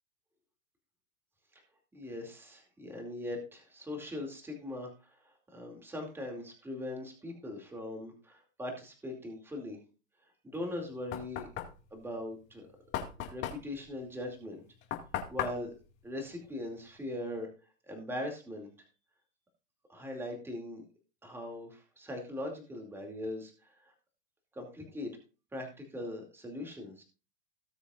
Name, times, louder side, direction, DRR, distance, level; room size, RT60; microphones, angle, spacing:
voice 1, 1.9-9.8 10.4-11.5 11.9-12.7 13.3-14.6 15.3-15.7 16.0-17.5 17.9-18.7 19.9-20.8 21.2-23.9 24.5-25.1 25.5-27.0, left 1 dB, 5° right, 1 dB, 2.4 m, -40 dB
Knock, 10.6-17.0, left 10 dB, 30° left, 2.0 m, -40 dB
18.5 x 6.9 x 2.4 m, 0.35 s
hypercardioid pair, 140°, 41 cm